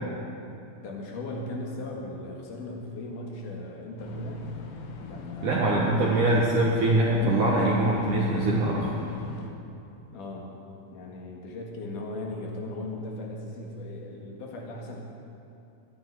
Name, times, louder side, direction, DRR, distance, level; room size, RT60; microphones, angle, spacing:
voice 1, 0.8-4.5 5.0-6.1 10.1-10.5 10.9-15.0, left 1 dB, 60° left, -1 dB, 2.3 m, -37 dB
sound 1, 4.0-9.5, left 4 dB, 75° left, 3.5 m, -41 dB
voice 2, 5.4-8.9, right 1 dB, 75° right, -4 dB, 1.9 m, -23 dB
19.0 x 13.0 x 4.8 m, 2.8 s
omnidirectional pair, 5.9 m